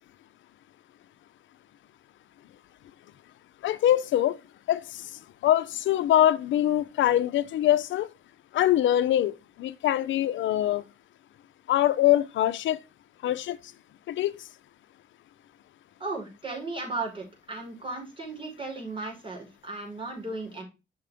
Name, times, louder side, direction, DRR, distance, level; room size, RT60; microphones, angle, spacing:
voice 1, 3.6-4.4 4.7-5.0 5.4-8.1 8.5-10.8 11.7-12.8 13.2-13.6 14.1-14.3, left 12 dB, 70° left, 0.7 m, -23 dB
voice 2, 16.0-20.6, right 3 dB, 25° right, 5.0 m, -35 dB
7.3 x 6.0 x 3.5 m
cardioid pair, 90°, 20 cm